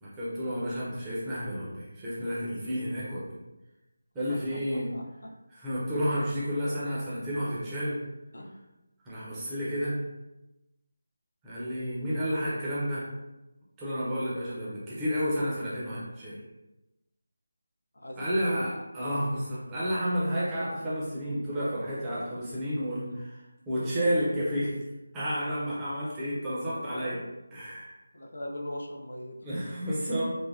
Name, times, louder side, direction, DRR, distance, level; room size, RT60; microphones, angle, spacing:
voice 1, 0.0-3.4 4.1-4.9 5.6-8.0 9.0-10.0 11.4-13.1 13.8-16.4 18.2-24.8 25.1-27.2 27.5-28.0 29.4-30.3, equal, 5° right, -10 dB, 0.4 m, -31 dB
voice 2, 4.3-5.3 8.3-8.6 17.9-18.7 23.1-23.2 24.1-24.2 26.7-27.2 28.1-29.4, left 1 dB, 85° left, 1 dB, 0.5 m, -40 dB
3.1 x 2.1 x 2.3 m, 0.98 s
figure-of-eight pair, 180°, 0 cm